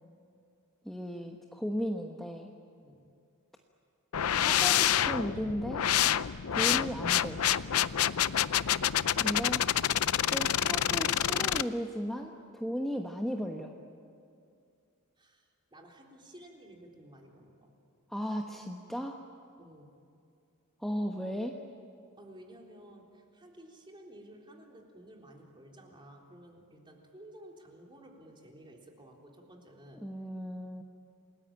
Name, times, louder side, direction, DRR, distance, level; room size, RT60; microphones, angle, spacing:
voice 1, 0.8-2.5 4.3-5.9 6.5-7.4 9.1-9.7 10.3-13.7 18.1-19.2 20.8-21.6 30.0-30.8, equal, ahead, 1 dB, 1.2 m, -35 dB
sound 1, 4.1-11.6, left 10 dB, 80° left, 0.6 m, -28 dB
voice 2, 15.2-17.7 19.6-19.9 22.2-30.0, right 1 dB, 20° right, 0 dB, 3.8 m, -53 dB
29.0 x 20.0 x 8.9 m, 2.5 s
head